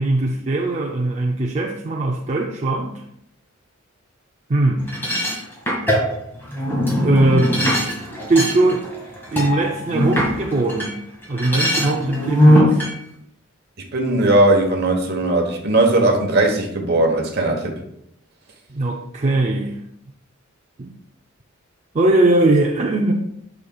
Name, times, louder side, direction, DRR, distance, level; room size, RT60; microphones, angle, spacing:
voice 1, 0.0-3.0 4.5-4.9 7.0-7.6 8.3-8.8 9.3-11.0 11.3-12.8 18.7-19.8 20.8-20.9 21.9-23.1, right 2 dB, 35° right, 1 dB, 0.5 m, -20 dB
sound 1, 4.9-10.9 11.2-12.9, equal, 10° left, 1.9 m, -20 dB
voice 2, 13.8-17.8, right 2 dB, 50° right, 2 dB, 1.1 m, -18 dB
8.6 x 6.4 x 2.3 m, 0.76 s
head